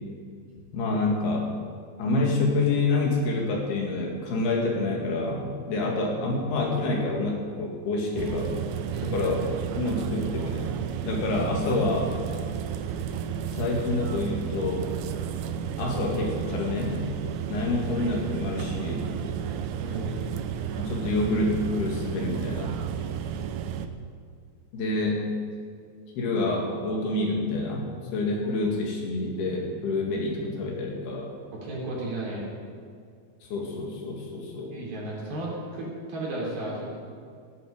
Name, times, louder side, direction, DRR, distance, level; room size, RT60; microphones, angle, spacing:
voice 1, 0.7-1.5 2.0-8.5 9.0-10.7 11.1-12.1 13.5-14.8 15.8-17.0 17.5-19.2 20.8-22.7 24.7-25.2 26.2-31.3 33.5-34.7, left 2 dB, 80° left, -1 dB, 4.4 m, -27 dB
sound 1, 8.2-23.9, right 8 dB, 85° right, 1.7 m, -32 dB
voice 2, 8.9-9.2 19.8-20.2 28.4-28.6 31.5-32.5 34.7-37.0, right 2 dB, 65° right, -5 dB, 5.8 m, -34 dB
18.0 x 11.5 x 5.3 m, 2.2 s
omnidirectional pair, 4.4 m